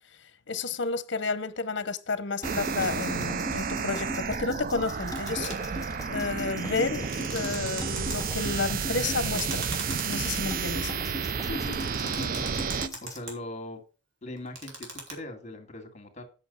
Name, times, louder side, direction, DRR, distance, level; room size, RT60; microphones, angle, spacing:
voice 1, 0.5-5.8 6.1-7.1 7.3-9.6 10.0-10.9, left 4 dB, 65° left, 0.8 m, -31 dB
sound 1, 2.4-13.2, left 1 dB, 20° left, 0.7 m, -40 dB
sound 2, 2.4-12.9, right 6 dB, 45° right, 0.4 m, -31 dB
sound 3, 5.1-5.8 6.8-8.1 9.2-10.8 11.6-13.3 14.4-15.1, right 2 dB, 85° right, 3.1 m, -39 dB
voice 2, 11.5-12.6 13.0-13.8 14.2-16.2, left 1 dB, 40° left, 2.0 m, -40 dB
8.5 x 6.2 x 5.4 m
head